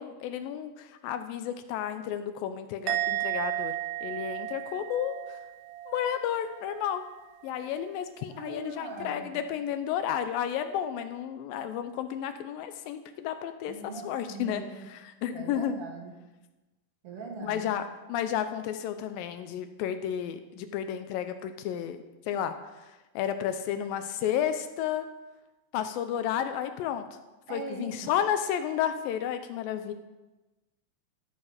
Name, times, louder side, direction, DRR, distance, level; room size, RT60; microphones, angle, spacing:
voice 1, 0.0-3.7 4.0-5.2 5.9-7.0 7.4-15.8 17.4-22.0 22.3-25.1 25.7-27.1 27.5-29.9, left 9 dB, 80° left, 9 dB, 2.2 m, -32 dB
Musical instrument, 2.9-6.3 6.5-7.0, right 14 dB, 85° right, 2.4 m, -33 dB
voice 2, 8.3-9.4 13.7-14.7 15.3-16.1 17.0-17.7 27.5-28.1, right 4 dB, 55° right, 1 dB, 1.8 m, -41 dB
13.5 x 6.5 x 4.9 m, 1.1 s
omnidirectional pair, 4.3 m